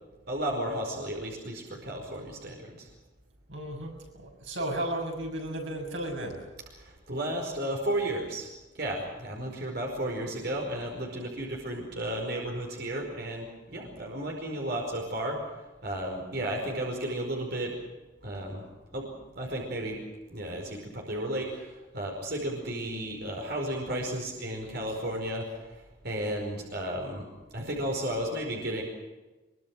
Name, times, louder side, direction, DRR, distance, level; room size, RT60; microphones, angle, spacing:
voice 1, 0.3-2.9 6.7-8.5 8.7-15.4 15.8-17.7 18.2-18.6 18.9-20.0 20.3-27.3 27.5-28.8, right 1 dB, 55° right, 0 dB, 5.1 m, -33 dB
voice 2, 3.5-3.9 4.2-6.4, right 1 dB, 85° right, 2 dB, 7.0 m, -34 dB
23.5 x 23.5 x 6.3 m, 1.2 s
head